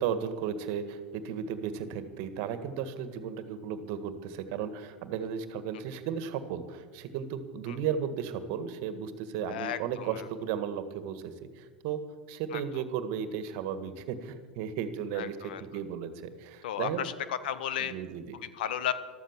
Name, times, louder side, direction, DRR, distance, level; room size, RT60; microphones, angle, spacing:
voice 1, 0.0-12.0 12.3-17.1 17.8-18.3, right 8 dB, 55° right, 11 dB, 1.7 m, -35 dB
voice 2, 9.5-10.3 12.5-12.8 15.1-15.6 16.6-17.9 18.4-18.9, left 10 dB, 70° left, 14 dB, 1.1 m, -34 dB
13.5 x 13.0 x 7.3 m, 1.5 s
hypercardioid pair, 95°, 5 cm